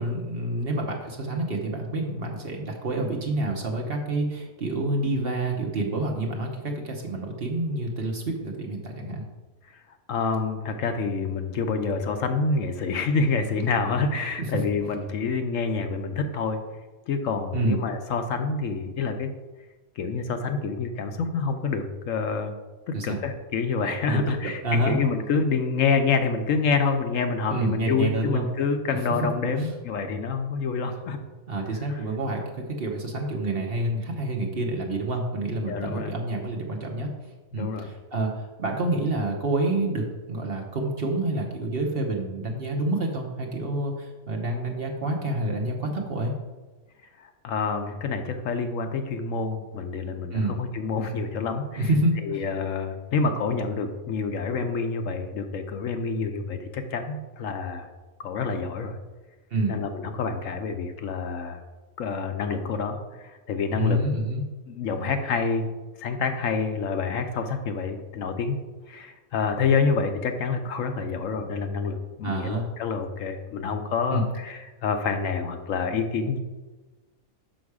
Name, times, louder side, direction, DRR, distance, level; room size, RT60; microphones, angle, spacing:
voice 1, 0.0-9.2 14.4-14.5 17.5-17.8 22.9-23.2 24.0-24.2 24.6-25.0 27.5-28.5 29.6-29.7 31.5-37.1 37.5-46.3 50.3-50.5 51.8-52.4 59.5-59.7 63.7-64.4 72.2-72.7 74.1-74.2, right 1 dB, 45° right, 0 dB, 1.0 m, -28 dB
voice 2, 10.1-16.6 17.1-19.3 20.0-22.6 22.9-31.2 35.7-36.1 37.5-37.9 47.2-51.9 52.2-57.9 58.2-59.0 59.7-61.6 62.0-64.0 64.7-65.7 66.0-68.6 68.9-76.4, left 4 dB, 70° left, 7 dB, 1.0 m, -27 dB
6.3 x 5.9 x 4.8 m, 1.2 s
omnidirectional pair, 1.5 m